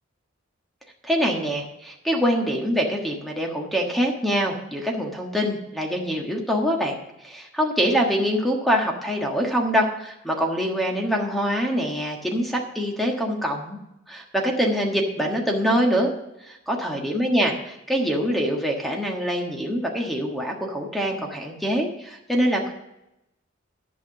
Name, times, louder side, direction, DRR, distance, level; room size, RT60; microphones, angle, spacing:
voice 1, 1.0-7.0 7.2-13.8 14.1-16.1 16.4-22.7, equal, ahead, 1 dB, 1.4 m, -24 dB
11.5 x 5.9 x 6.6 m, 0.87 s
head